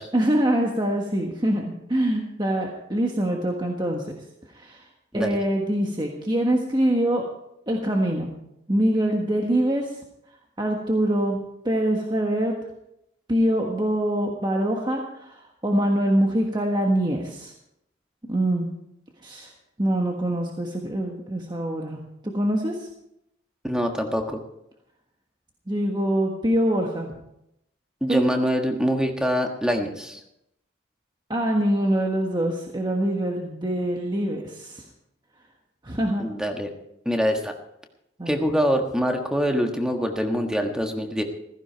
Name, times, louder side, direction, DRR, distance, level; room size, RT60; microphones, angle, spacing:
voice 1, 0.1-4.9 5.1-7.2 7.7-8.3 8.7-9.9 10.6-11.4 11.6-12.5 13.3-17.5 18.3-18.7 19.2-19.5 19.8-22.9 25.7-27.1 28.1-28.2 31.3-34.8 35.8-36.3 38.2-38.5, right 1 dB, 20° right, 1 dB, 1.4 m, -24 dB
voice 2, 23.6-24.4 28.0-30.2 36.2-36.7 37.0-37.5 38.3-41.2, equal, 5° right, 3 dB, 1.5 m, -24 dB
15.5 x 15.0 x 4.6 m, 0.81 s
head